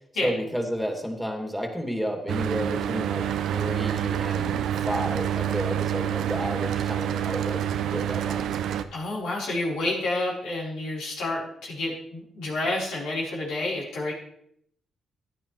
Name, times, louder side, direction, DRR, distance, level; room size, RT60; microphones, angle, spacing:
voice 1, 0.2-7.6 7.9-8.6, equal, ahead, 2 dB, 2.7 m, -31 dB
Mechanical fan, 2.3-8.8, right 10 dB, 80° right, 0.6 m, -27 dB
voice 2, 8.9-14.1, left 2 dB, 85° left, -5 dB, 4.3 m, -29 dB
14.5 x 9.6 x 3.3 m, 0.71 s
supercardioid pair, 65°, 0 cm